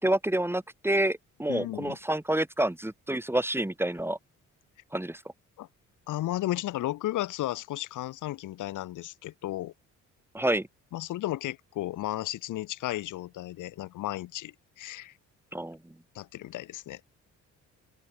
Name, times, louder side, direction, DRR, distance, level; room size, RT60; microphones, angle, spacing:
voice 1, 0.0-4.2 4.9-5.2 10.3-10.7 15.5-15.9, right 1 dB, 10° right, 6.2 m, -28 dB
voice 2, 1.5-2.0 5.6-5.7 6.1-9.7 10.9-15.1 16.1-17.0, left 15 dB, 85° left, 2.2 m, -34 dB
open air
cardioid pair, 90°, 30 cm